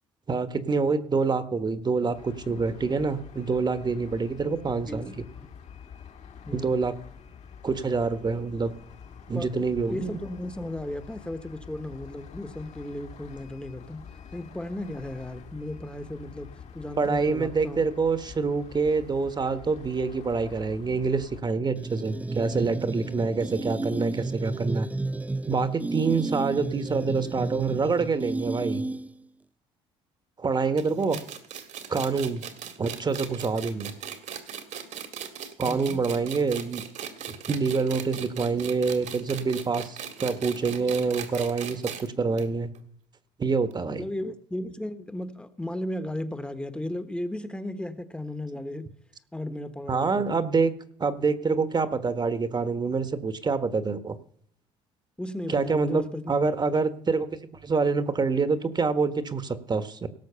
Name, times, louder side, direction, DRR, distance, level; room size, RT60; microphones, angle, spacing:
voice 1, 0.3-5.2 6.5-6.9 7.6-8.7 9.3-10.2 17.0-24.9 25.5-28.8 30.4-31.2 31.9-32.4 32.8-33.9 35.6-36.8 37.5-42.7 43.4-44.0 49.9-50.7 51.0-54.2 55.5-60.1, right 4 dB, 30° right, 12 dB, 1.3 m, -26 dB
sound 1, 2.1-21.4, left 7 dB, 55° left, 1.9 m, -47 dB
voice 2, 9.9-16.5 16.7-17.8 31.0-31.2 35.7-36.0 43.9-48.9 49.3-50.4 55.2-56.3, left 1 dB, 5° left, 10 dB, 1.2 m, -35 dB
sound 2, 21.8-29.3, right 2 dB, 10° right, 0.5 m, -32 dB
sound 3, 30.8-42.1 42.4-42.5 42.7-42.8 43.7-43.8, right 8 dB, 65° right, 2.0 m, -38 dB
17.5 x 6.3 x 6.8 m, 0.67 s
supercardioid pair, 70°, 14 cm